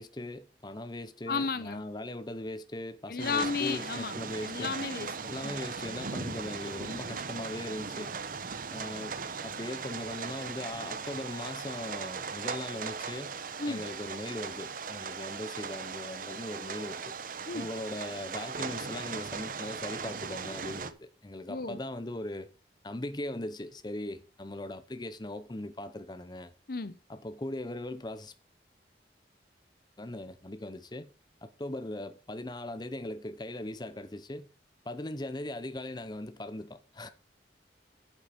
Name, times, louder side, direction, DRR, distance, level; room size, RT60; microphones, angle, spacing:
voice 1, 0.0-4.8 5.2-8.2 8.7-13.3 13.7-17.1 17.5-22.5 22.8-26.5 27.1-28.3 30.0-31.1 31.4-34.5 34.8-37.1, left 1 dB, 25° left, 0.8 m, -39 dB
voice 2, 1.3-1.8 3.1-4.2 4.4-5.1 5.4-5.6 13.6-13.8 17.5-17.7 21.5-21.8 26.7-26.9, left 5 dB, 55° left, 0.8 m, -33 dB
sound 1, 3.2-20.9, right 5 dB, 50° right, 0.8 m, -38 dB
9.1 x 7.4 x 5.1 m
head